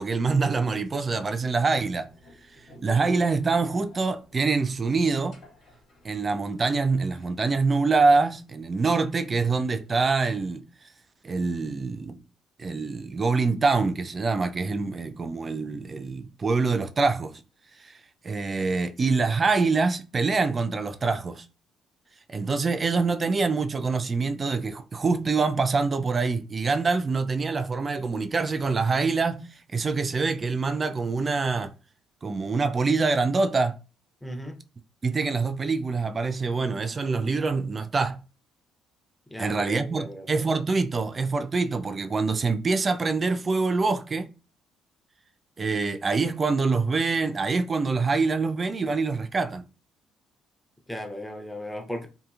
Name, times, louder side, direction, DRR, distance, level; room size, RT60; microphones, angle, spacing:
voice 1, 0.0-2.1 2.8-5.4 6.0-10.6 11.2-12.2 12.6-17.4 17.8-18.0 18.2-21.4 22.3-31.7 32.2-33.8 35.0-38.2 39.4-44.3 45.6-49.6, right 4 dB, 40° right, 0.4 m, -25 dB
sound 1, 2.1-7.4, left 1 dB, 65° left, 1.4 m, -52 dB
voice 2, 34.2-34.6 39.3-40.3 50.9-52.1, equal, 10° left, 0.7 m, -36 dB
2.8 x 2.6 x 2.3 m
hypercardioid pair, 55°, 0 cm